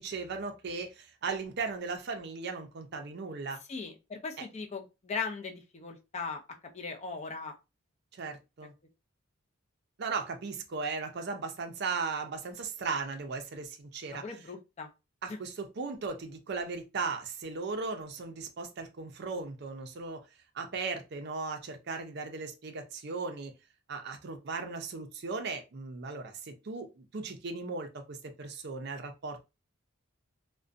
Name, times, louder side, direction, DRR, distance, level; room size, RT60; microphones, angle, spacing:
voice 1, 0.0-3.6 8.2-8.7 10.0-14.2 15.2-20.2 20.5-23.5 23.9-29.4, right 4 dB, 50° right, 5 dB, 0.5 m, -37 dB
voice 2, 3.7-6.4 6.7-7.5 14.2-14.9 15.3-15.4, left 4 dB, 30° left, 3 dB, 0.5 m, -38 dB
2.5 x 2.1 x 2.4 m, 0.26 s
head